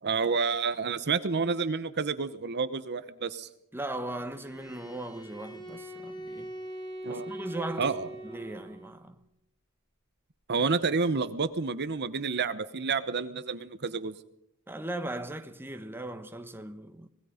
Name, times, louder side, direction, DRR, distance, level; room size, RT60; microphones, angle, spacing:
voice 1, 0.0-3.5 7.0-7.3 7.8-8.1 10.5-14.1, right 4 dB, 50° right, 1.0 m, -29 dB
voice 2, 3.7-6.5 7.1-7.9 8.2-9.2 14.7-17.1, right 1 dB, 10° right, 1.2 m, -38 dB
Bowed string instrument, 4.2-8.9, right 1 dB, 20° left, 7.7 m, -42 dB
25.5 x 20.0 x 5.1 m
head